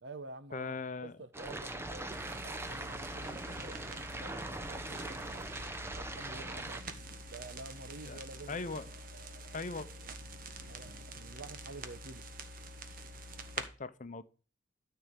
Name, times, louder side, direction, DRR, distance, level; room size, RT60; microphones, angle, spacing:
voice 1, 0.0-5.5 5.9-6.9 7.3-8.8 10.6-12.2, right 2 dB, 65° right, 0.9 m, -49 dB
voice 2, 0.5-1.1 8.1-8.2 8.5-8.9 9.5-9.9 13.6-14.2, left 4 dB, 40° left, 0.8 m, -39 dB
sound 1, 1.3-6.8, right 2 dB, 15° right, 0.8 m, -41 dB
sound 2, 2.1-13.7, right 2 dB, 45° right, 1.3 m, -46 dB
13.0 x 4.6 x 8.2 m
head